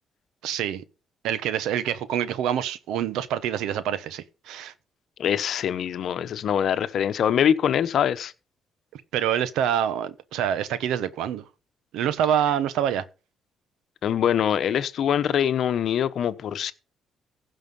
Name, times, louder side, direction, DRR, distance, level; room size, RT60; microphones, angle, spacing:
voice 1, 0.4-0.8 1.2-4.7 8.9-11.4 11.9-13.0, right 9 dB, 90° right, 1.0 m, -26 dB
voice 2, 5.2-8.3 14.0-16.7, left 9 dB, 65° left, 1.0 m, -23 dB
16.0 x 5.7 x 5.4 m
cardioid pair, 90°, 0 cm